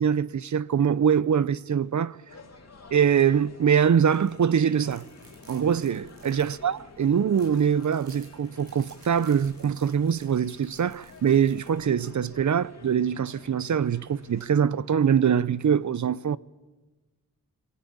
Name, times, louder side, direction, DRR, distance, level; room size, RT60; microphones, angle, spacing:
voice 1, 0.0-2.2 2.9-5.1 5.5-16.4, right 8 dB, 55° right, 0.7 m, -23 dB
sound 1, 2.3-14.5, left 4 dB, 45° left, 2.8 m, -50 dB
sound 2, 4.0-4.3 4.7-11.8, right 2 dB, 80° right, 7.1 m, -56 dB
22.0 x 16.0 x 8.8 m
cardioid pair, 55°, 35 cm